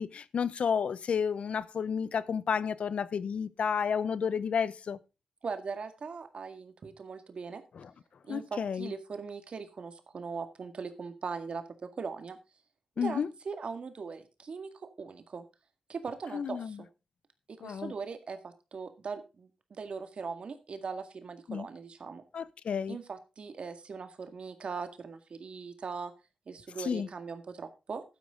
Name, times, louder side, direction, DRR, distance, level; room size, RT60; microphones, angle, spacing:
voice 1, 0.0-5.0 8.3-8.9 13.0-13.3 16.3-16.7 17.6-17.9 21.5-21.7 22.3-23.0 26.8-27.1, left 6 dB, 80° left, 0.7 m, -31 dB
voice 2, 5.4-7.6 8.3-11.6 12.0-12.4 13.0-15.4 15.9-16.9 17.5-22.2 22.9-26.1 26.5-28.0, right 5 dB, 65° right, 1.9 m, -40 dB
12.0 x 10.0 x 3.7 m
wide cardioid pair, 105°, 2 cm